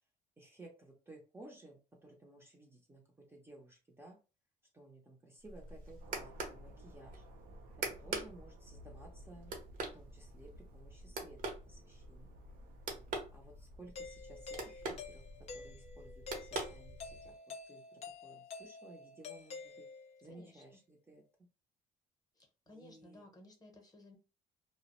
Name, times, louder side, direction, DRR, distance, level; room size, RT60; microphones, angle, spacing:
voice 1, 0.4-4.2 4.7-7.2 7.9-9.6 9.9-11.4 11.7-12.4 13.3-15.3 15.5-17.4 17.7-19.8 20.2-21.2 22.7-23.2, right 2 dB, 15° right, -1 dB, 0.6 m, -56 dB
sound 1, 5.4-17.3, right 3 dB, 55° right, 0.8 m, -45 dB
sound 2, 6.0-13.8, right 6 dB, 90° right, 0.6 m, -64 dB
Doorbell, 14.0-20.3, left 4 dB, 40° left, 0.4 m, -49 dB
voice 2, 20.3-20.6 22.4-24.2, left 1 dB, 20° left, 2 dB, 0.8 m, -57 dB
2.2 x 2.0 x 2.9 m, 0.32 s
cardioid pair, 110°, 17 cm